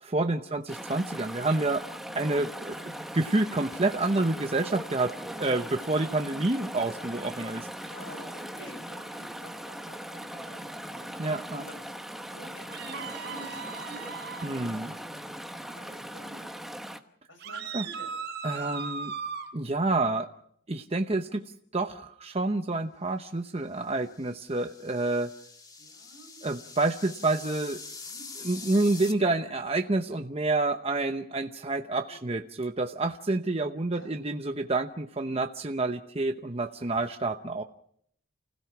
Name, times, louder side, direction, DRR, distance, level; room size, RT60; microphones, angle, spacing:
voice 1, 0.0-1.8 2.1-2.8 3.1-7.9 11.2-11.6 14.4-14.9 17.7-17.9 18.4-19.1 19.5-20.3 20.7-21.4 21.7-25.3 26.4-27.8 28.4-37.6, right 2 dB, 30° right, 6 dB, 0.8 m, -28 dB
Chatter / Stream, 0.7-17.0, equal, ahead, 1.1 m, -40 dB
voice 2, 7.8-11.1 11.5-11.7 12.3-14.0 15.7-16.4 17.3-18.1 25.8-26.3 28.1-28.2 32.1-32.3 33.9-34.2 35.3-35.4 36.9-37.1, equal, 65° left, 5 dB, 6.8 m, -49 dB
sound 1, 12.7-14.5 17.4-19.5, right 5 dB, 50° right, 4.7 m, -37 dB
sound 2, 24.0-29.1, left 4 dB, 20° left, 1.7 m, -44 dB
30.0 x 16.5 x 6.0 m, 0.68 s
head